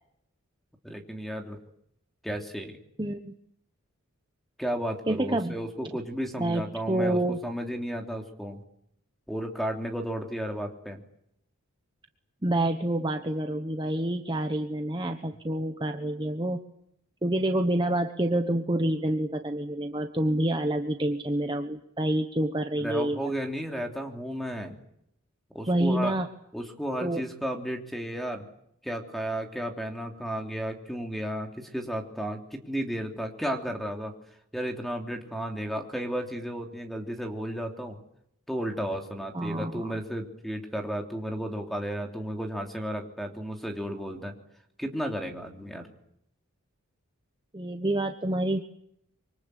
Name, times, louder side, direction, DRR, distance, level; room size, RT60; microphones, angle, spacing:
voice 1, 0.8-1.6 2.2-2.8 4.6-8.6 9.3-11.0 22.8-24.8 25.5-26.1 26.5-28.4 28.8-34.1 34.5-38.0 38.5-44.3 44.8-45.9, equal, ahead, 3 dB, 3.1 m, -33 dB
voice 2, 3.0-3.3 5.1-5.5 6.4-7.4 12.4-16.6 17.2-23.2 25.7-26.3 27.0-27.2 39.3-39.9 47.5-48.6, right 1 dB, 20° right, 5 dB, 1.1 m, -27 dB
26.0 x 24.5 x 8.3 m, 0.74 s
head